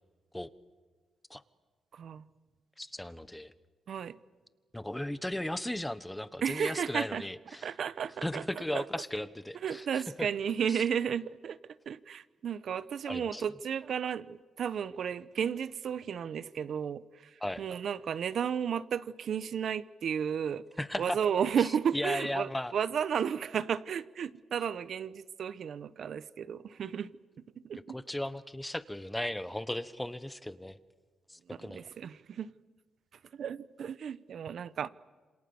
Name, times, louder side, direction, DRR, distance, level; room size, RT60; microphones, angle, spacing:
voice 1, 1.9-2.2 3.9-4.1 6.4-7.2 7.6-8.4 8.7-8.8 9.6-17.0 17.6-20.6 21.0-27.1 27.7-28.0 31.5-32.5 33.3-34.9, right 8 dB, 60° right, 0.9 m, -33 dB
voice 2, 2.8-3.5 4.7-7.7 8.2-10.3 10.7-10.8 13.0-13.4 17.4-17.6 20.8-21.2 21.6-22.7 27.9-30.8 31.3-31.8, left 1 dB, 5° left, 1.1 m, -36 dB
27.5 x 27.0 x 7.1 m
cardioid pair, 115°, 0 cm